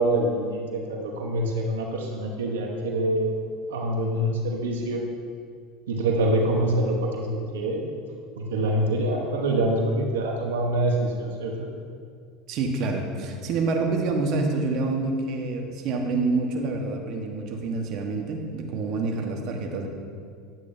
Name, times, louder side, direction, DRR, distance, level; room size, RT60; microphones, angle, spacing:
voice 1, 0.0-3.3 3.7-5.0 5.9-7.9 8.4-11.7, right 1 dB, 90° right, 0 dB, 1.0 m, -25 dB
voice 2, 12.5-19.9, right 3 dB, 55° right, 2 dB, 1.2 m, -27 dB
11.0 x 8.3 x 2.7 m, 2.2 s
supercardioid pair, 95°, 0 cm